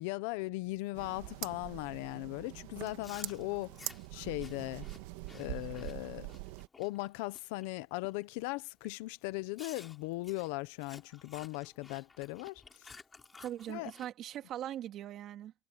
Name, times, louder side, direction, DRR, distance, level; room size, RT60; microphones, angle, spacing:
voice 1, 0.0-3.8 4.1-4.9 5.3-6.3 6.8-12.9 13.7-13.9, left 22 dB, 70° left, 1.1 m, -38 dB
sound 1, 0.9-6.7, right 20 dB, 70° right, 1.7 m, -44 dB
Chewing mastication, 2.8-7.7 8.0-8.4 8.8-9.0 9.6-14.1, left 4 dB, 15° left, 3.2 m, -55 dB
voice 2, 13.4-15.5, right 11 dB, 35° right, 3.2 m, -41 dB
cardioid pair, 165°, 0 cm